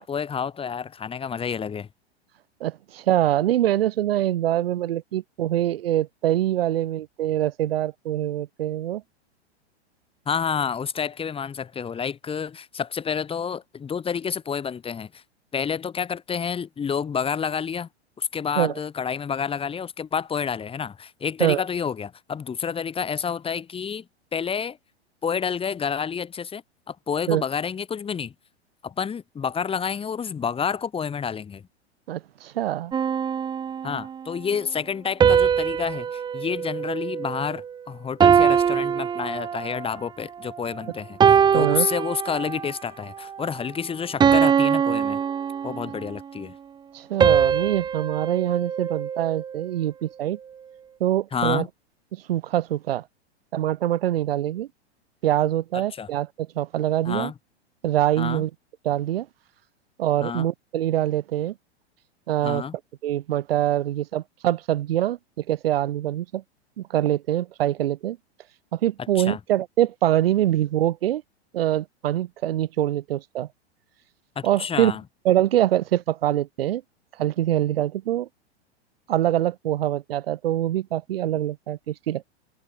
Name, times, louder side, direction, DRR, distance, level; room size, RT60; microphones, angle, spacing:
voice 1, 0.0-1.9 10.3-15.2 15.5-17.9 18.2-24.1 24.3-24.8 25.2-26.6 26.9-28.3 28.8-31.6 33.8-45.2 45.6-46.5 51.3-51.7 55.7-56.1 57.0-57.3 58.2-58.4 60.2-60.5 62.4-62.8 69.1-69.4 74.4-75.0, left 7 dB, 15° left, 2.7 m, -29 dB
voice 2, 2.6-9.0 18.6-18.7 21.4-21.6 27.3-27.4 32.1-32.9 41.5-41.9 46.9-50.4 51.0-51.6 52.3-53.0 53.5-54.7 55.2-57.3 57.8-58.5 58.8-59.3 60.0-61.5 62.3-62.6 63.0-65.2 65.5-66.4 66.8-68.2 68.7-71.2 71.5-73.5 74.4-74.9 75.3-76.8 77.2-78.3 79.1-82.3, right 12 dB, 60° right, 1.9 m, -24 dB
sound 1, 32.9-34.2 35.2-37.7 38.2-39.9 40.5-40.7 41.2-42.7 43.2-43.5 44.2-46.1 47.2-49.6, right 7 dB, 15° right, 0.7 m, -22 dB
figure-of-eight pair, 100°, 33 cm